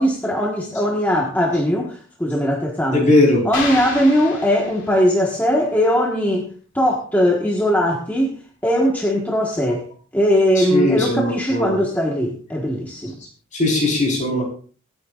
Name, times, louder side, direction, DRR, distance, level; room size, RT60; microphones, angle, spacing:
voice 1, 0.0-3.1 3.4-6.5 6.7-9.9 10.1-13.2, equal, 10° left, -2 dB, 1.5 m, -20 dB
voice 2, 2.9-3.4 10.6-11.8 13.5-14.4, left 2 dB, 35° left, -1 dB, 4.6 m, -19 dB
sound 1, 3.5-5.3, left 3 dB, 60° left, 3.2 m, -30 dB
24.0 x 8.9 x 2.5 m, 0.41 s
head